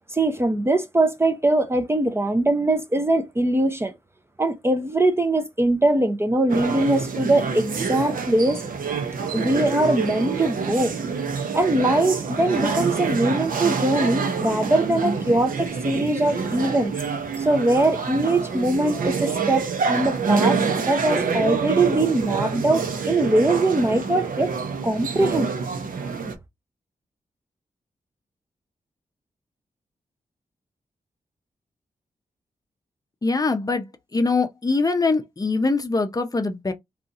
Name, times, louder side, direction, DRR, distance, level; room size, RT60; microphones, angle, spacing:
voice 1, 0.1-3.9 4.4-8.6 9.3-10.9 11.5-16.9 17.4-24.5 24.8-25.5, right 2 dB, 20° right, 0.5 m, -22 dB
sound 1, 6.5-26.4, right 5 dB, 85° right, 0.7 m, -27 dB
voice 2, 33.2-36.7, left 3 dB, 25° left, 0.5 m, -23 dB
2.7 x 2.4 x 3.6 m
wide cardioid pair, 95°, 14 cm